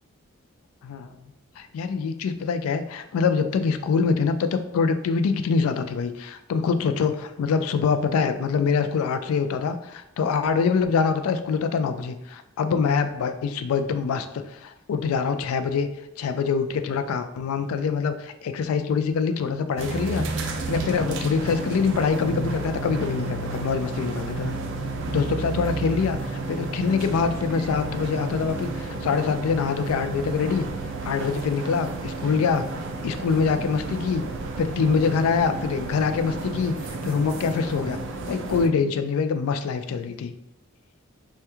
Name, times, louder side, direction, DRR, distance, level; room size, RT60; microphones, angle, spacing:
voice 1, 1.6-14.3 14.5-15.9 16.2-24.5 25.1-30.7 31.0-32.6 33.0-34.2 34.6-38.0 38.3-40.3, left 5 dB, 85° left, 10 dB, 0.3 m, -24 dB
sound 1, 19.8-38.7, right 3 dB, 60° right, 0.3 m, -32 dB
2.9 x 2.2 x 3.4 m, 0.87 s
head